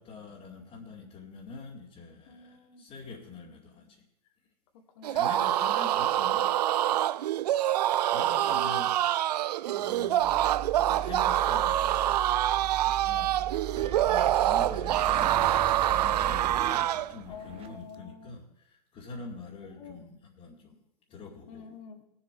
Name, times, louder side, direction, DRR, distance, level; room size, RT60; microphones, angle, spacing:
voice 1, 0.0-4.1 5.1-6.6 6.9-7.1 8.1-9.2 9.7-12.4 13.0-13.5 14.0-20.8 21.1-21.7, left 4 dB, 35° left, -4 dB, 2.4 m, -45 dB
voice 2, 2.3-2.9 4.7-5.7 8.0-8.9 12.6-12.9 17.3-18.4 19.6-20.1 21.5-22.0, left 6 dB, 60° left, 3 dB, 2.5 m, -49 dB
sound 1, 5.0-17.1, right 13 dB, 75° right, 0.4 m, -26 dB
sound 2, 10.2-16.7, right 8 dB, 55° right, 3.3 m, -40 dB
sound 3, 13.8-17.8, right 7 dB, 30° right, 1.1 m, -41 dB
19.0 x 7.3 x 4.7 m, 0.80 s
hypercardioid pair, 105°, 21 cm